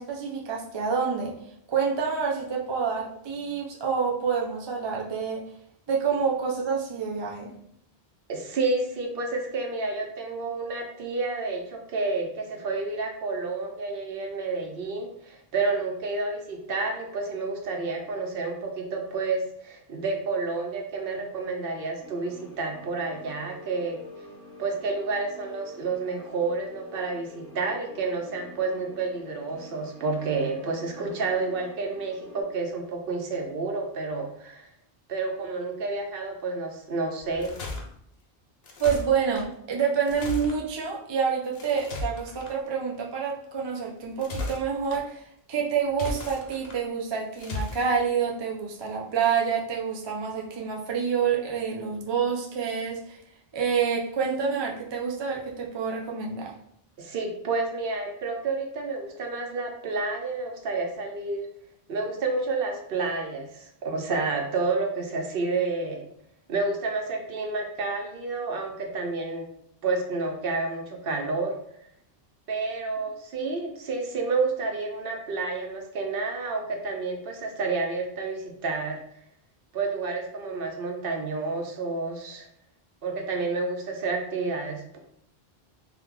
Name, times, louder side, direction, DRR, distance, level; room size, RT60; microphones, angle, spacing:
voice 1, 0.0-1.3 1.7-5.4 5.9-7.5 38.8-45.2 45.5-53.2 53.5-56.5, right 6 dB, 40° right, -1 dB, 0.4 m, -27 dB
voice 2, 8.3-24.0 24.6-34.7 35.1-37.5 57.0-61.5 61.9-66.1 66.5-69.5 69.8-71.5 72.5-79.0 79.7-82.5 83.0-85.0, right 3 dB, 65° right, 3 dB, 0.7 m, -30 dB
sound 1, 22.0-32.4, left 1 dB, 15° right, 1.0 m, -47 dB
sound 2, 37.2-37.8 38.6-39.4 40.1-40.6 41.5-42.5 44.0-45.0 45.9-46.8 47.4-47.8, left 2 dB, 70° left, 0.9 m, -35 dB
2.8 x 2.2 x 3.6 m, 0.69 s
omnidirectional pair, 1.1 m